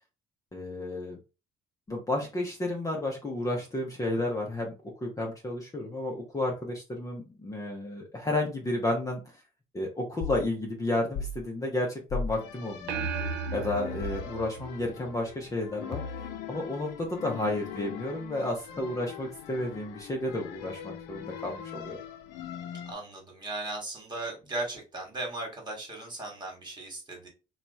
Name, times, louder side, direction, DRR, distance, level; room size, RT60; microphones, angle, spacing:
voice 1, 0.5-1.2 1.9-4.7 5.0-9.2 9.7-13.1 13.5-16.0 16.5-22.0, left 1 dB, 20° left, 0 dB, 0.8 m, -32 dB
sound 1, 10.2-10.5 11.1-11.4 12.1-12.4 14.0-14.3 15.9-16.4, left 4 dB, 40° left, 0.4 m, -34 dB
sound 2, 12.4-22.9, left 9 dB, 90° left, 0.6 m, -42 dB
sound 3, 12.9-15.5, right 6 dB, 85° right, 0.6 m, -35 dB
voice 2, 22.9-27.3, right 2 dB, 25° right, 1 dB, 1.6 m, -37 dB
2.9 x 2.3 x 4.0 m, 0.31 s
cardioid pair, 110°, 17 cm